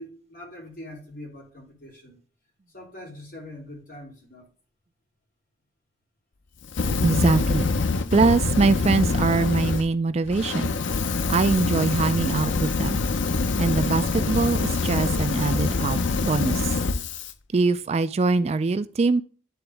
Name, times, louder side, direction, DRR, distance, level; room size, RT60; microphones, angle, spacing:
voice 1, 0.0-2.2 2.7-4.5, left 1 dB, 50° left, 3.2 m, -43 dB
Fire, 6.7-9.8 10.3-17.3, left 3 dB, 85° left, 0.6 m, -25 dB
voice 2, 7.0-7.7 8.1-10.7 11.3-13.0 13.6-16.7 17.5-19.2, right 3 dB, 35° right, 0.3 m, -23 dB
11.0 x 3.9 x 3.4 m
head